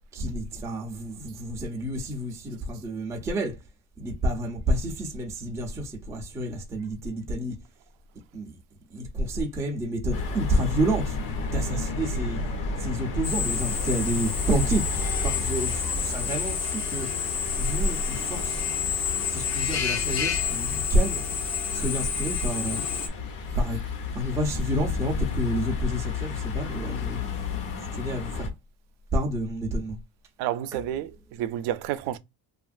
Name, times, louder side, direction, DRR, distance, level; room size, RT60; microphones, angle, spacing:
voice 1, 0.1-3.6 4.0-7.5 8.3-8.6 8.9-11.2 11.5-12.4 12.8-14.9 15.2-17.1 17.6-18.6 19.3-21.2 21.7-22.8 23.6-23.8 24.1-27.2 27.9-28.5 29.1-30.0, right 1 dB, 10° right, 0.3 m, -29 dB
sound 1, 10.1-15.3, left 1 dB, 85° left, 1.2 m, -33 dB
sound 2, 10.1-28.5, left 4 dB, 55° left, 0.9 m, -34 dB
Drill, 13.2-23.1, left 7 dB, 40° left, 0.6 m, -30 dB
voice 2, 30.4-32.2, right 12 dB, 70° right, 0.5 m, -30 dB
2.9 x 2.4 x 2.3 m
cardioid pair, 165°, 41 cm